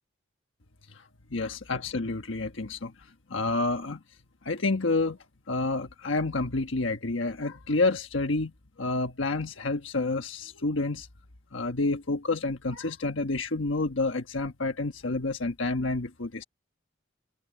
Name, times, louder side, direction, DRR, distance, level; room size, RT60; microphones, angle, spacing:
voice 1, 1.3-2.9 3.3-4.0 4.4-5.2 5.5-8.5 8.8-11.1 11.5-16.4, left 3 dB, 75° left, 1.3 m, -29 dB
head